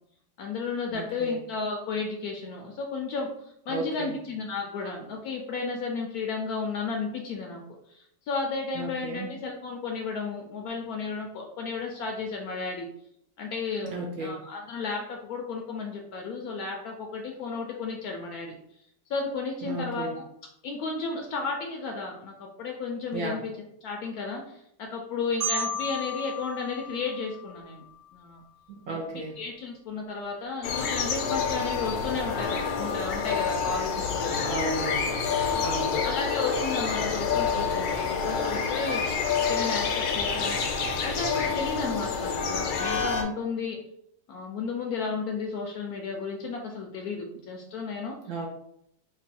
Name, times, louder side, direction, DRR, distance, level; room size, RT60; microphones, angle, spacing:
voice 1, 0.4-3.3 3.7-7.6 7.9-12.9 13.4-18.5 19.1-20.1 20.6-23.5 23.8-27.8 28.1-28.4 28.9-34.8 35.4-35.7 36.0-39.2 39.5-43.8 44.3-48.2, left 4 dB, 70° left, 1 dB, 0.9 m, -33 dB
voice 2, 0.9-1.4 3.7-4.2 8.7-9.3 13.8-14.4 19.6-20.1 23.1-23.4 28.7-29.3 34.5-35.2 35.6-36.0 48.3-48.5, right 2 dB, 70° right, 0 dB, 0.9 m, -34 dB
Marimba xylophone, 25.4-28.2, equal, 30° right, 0.9 m, -34 dB
sound 1, 30.6-43.2, left 5 dB, 85° left, 1.3 m, -28 dB
3.0 x 2.4 x 4.2 m, 0.74 s
omnidirectional pair, 1.9 m